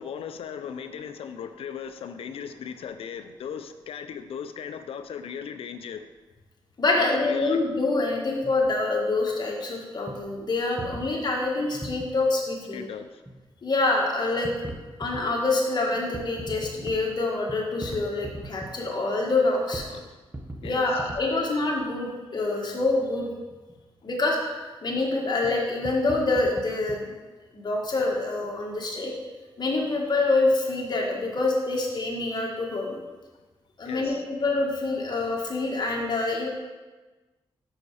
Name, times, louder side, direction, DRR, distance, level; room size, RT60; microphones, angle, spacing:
voice 1, 0.0-6.1 7.0-7.6 12.7-13.2 19.9-20.2 20.6-20.9 33.9-34.2, left 7 dB, 90° left, 9 dB, 0.4 m, -37 dB
voice 2, 6.8-12.9 13.6-14.5 15.0-19.8 20.6-23.3 24.0-24.5 24.8-27.1 27.5-29.1 29.6-33.0 33.8-36.5, left 2 dB, 50° left, -1 dB, 1.5 m, -26 dB
sound 1, 8.3-8.8 9.3-9.4 10.1-10.2 10.8-12.1 13.2-13.4 13.8-13.9 14.4-15.2 16.0-17.0 17.5-18.7 19.4-19.5 19.7-19.9 20.2-21.2 21.6-21.7 23.5-23.7 25.4-25.5 25.8-27.0, right 2 dB, 20° right, 1.0 m, -39 dB
5.8 x 5.1 x 4.8 m, 1.3 s
cardioid pair, 80°, 9 cm